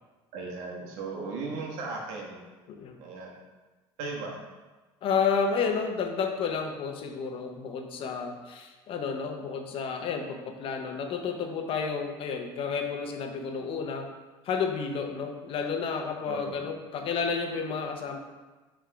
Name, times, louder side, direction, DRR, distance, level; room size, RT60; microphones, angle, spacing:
voice 1, 0.3-2.4 3.0-3.3 4.0-4.4 16.3-16.6, right 3 dB, 80° right, -1 dB, 1.4 m, -36 dB
voice 2, 5.0-14.1 14.4-18.2, left 5 dB, 55° left, 4 dB, 0.8 m, -31 dB
5.9 x 3.6 x 4.7 m, 1.2 s
supercardioid pair, 105°, 11 cm